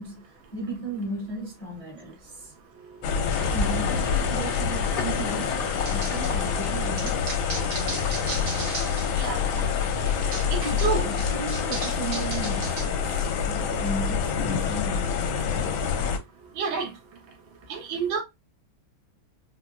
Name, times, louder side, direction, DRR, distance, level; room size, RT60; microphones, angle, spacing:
voice 1, 0.0-2.5 3.1-7.3 10.6-15.8, right 2 dB, 25° left, 0.7 m, -36 dB
sound 1, 3.0-16.2, left 6 dB, 80° left, 1.4 m, -27 dB
sound 2, 3.2-12.8, left 4 dB, 60° left, 0.7 m, -36 dB
sound 3, 5.9-9.2 9.5-12.9, right 3 dB, 55° right, 1.5 m, -37 dB
voice 2, 9.2-9.5 10.5-11.1 16.6-16.9 17.7-18.2, right 5 dB, 80° right, 1.6 m, -28 dB
4.2 x 2.4 x 2.2 m
omnidirectional pair, 2.2 m